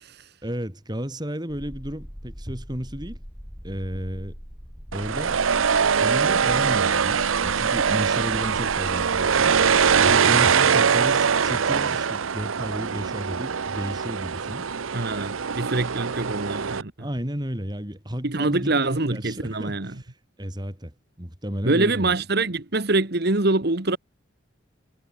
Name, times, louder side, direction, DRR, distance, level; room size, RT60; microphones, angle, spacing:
voice 1, 0.4-3.2 3.6-4.3 4.9-5.4 6.0-9.6 9.9-14.7 16.1-16.2 17.0-20.1 20.4-20.9 21.2-22.1, equal, 20° right, 3.5 m, -33 dB
sound 1, 1.5-10.2, equal, ahead, 3.7 m, -41 dB
sound 2, 4.9-16.8, right 6 dB, 90° right, 0.8 m, -22 dB
voice 2, 14.9-17.1 18.2-19.9 21.6-24.0, right 2 dB, 55° right, 1.5 m, -24 dB
head